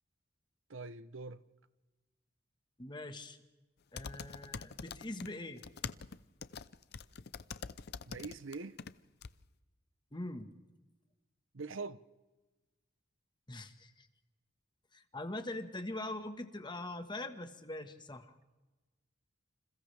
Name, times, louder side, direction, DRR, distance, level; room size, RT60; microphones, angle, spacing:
voice 1, 0.7-1.4 8.1-8.8 11.5-12.0, right 3 dB, 75° right, 0.8 m, -43 dB
voice 2, 2.8-3.4 3.9-5.6 10.1-10.5 13.5-14.1 14.9-18.3, left 2 dB, 25° left, 1.5 m, -42 dB
sound 1, 4.0-5.3 5.6-8.9 9.2-9.3, left 6 dB, 55° left, 0.7 m, -44 dB
29.5 x 27.5 x 3.5 m
head